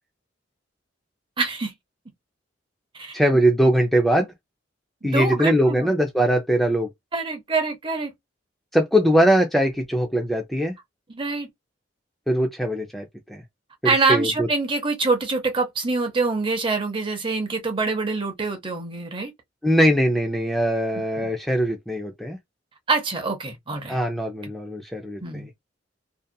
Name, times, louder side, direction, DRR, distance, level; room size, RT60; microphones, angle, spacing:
voice 1, 1.4-1.7 2.9-3.2 5.0-5.9 7.1-8.1 11.1-11.5 13.8-19.3 21.2-21.3 22.9-24.0 24.4-24.5 25.2-25.5, right 3 dB, 30° right, 0.7 m, -25 dB
voice 2, 3.1-4.3 5.0-6.9 8.7-10.7 12.3-13.4 13.8-14.5 19.6-22.4 23.9-25.5, equal, ahead, 0.4 m, -21 dB
2.7 x 2.3 x 2.2 m
head